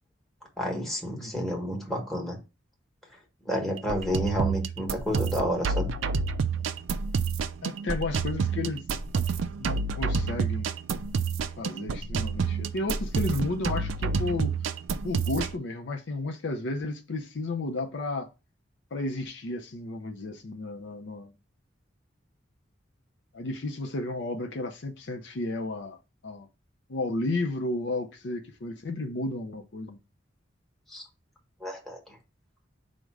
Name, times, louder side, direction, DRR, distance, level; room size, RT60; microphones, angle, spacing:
voice 1, 0.6-2.4 3.4-5.9 30.9-31.0 31.6-32.2, equal, ahead, 1.1 m, -30 dB
voice 2, 1.1-1.5 7.6-8.8 9.6-10.9 11.6-14.5 15.0-18.3 18.9-21.3 23.3-26.0 26.2-26.5 26.9-30.0, left 2 dB, 70° left, 0.5 m, -33 dB
sound 1, 3.8-15.6, right 5 dB, 85° right, 0.4 m, -29 dB
5.0 x 2.1 x 4.6 m
head